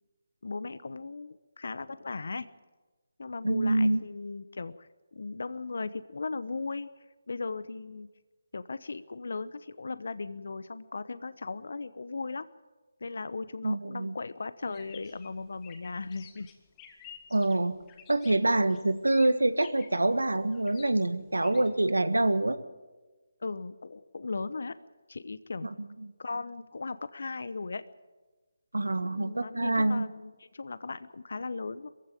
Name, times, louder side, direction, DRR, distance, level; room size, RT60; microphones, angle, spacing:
voice 1, 0.4-2.5 3.2-6.9 7.3-8.1 8.5-12.5 13.0-16.5 18.4-18.8 23.4-24.7 25.1-25.7 26.2-27.8 29.1-31.9, left 3 dB, 65° left, 14 dB, 0.9 m, -37 dB
voice 2, 3.4-4.0 13.6-14.1 17.3-17.8 18.1-22.6 28.7-30.1, right 2 dB, 90° right, 12 dB, 1.6 m, -26 dB
sound 1, 14.7-21.7, left 8 dB, 20° left, 1.9 m, -53 dB
22.5 x 15.5 x 9.1 m, 1.3 s
figure-of-eight pair, 155°, 0 cm